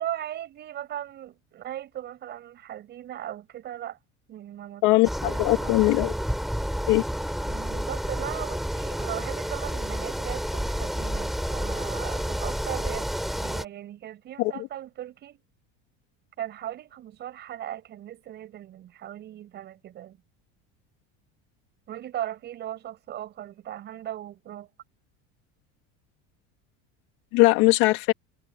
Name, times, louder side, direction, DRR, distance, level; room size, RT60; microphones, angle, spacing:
voice 1, 0.0-4.0 4.3-4.8 5.2-6.0 7.4-15.4 16.4-20.2 21.9-24.7, right 12 dB, 30° right, 7.3 m, -38 dB
voice 2, 4.8-6.1 6.9-7.0 14.4-14.5 27.3-28.1, left 22 dB, 60° left, 3.0 m, -20 dB
sound 1, 5.0-13.7, equal, ahead, 4.2 m, -30 dB
cardioid pair, 175°, 32 cm